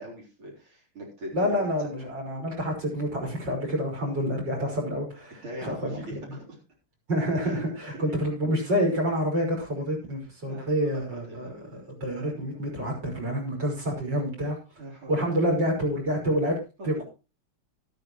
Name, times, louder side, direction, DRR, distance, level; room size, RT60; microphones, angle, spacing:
voice 1, 0.0-1.9 5.4-6.6 7.4-7.6 10.5-11.9 12.2-12.7 14.8-15.3 16.8-17.0, right 1 dB, 75° right, -3 dB, 4.7 m, -42 dB
voice 2, 1.3-6.0 7.1-14.6 15.1-17.0, equal, 55° right, -1 dB, 6.2 m, -28 dB
13.0 x 13.0 x 3.1 m, 0.32 s
omnidirectional pair, 2.3 m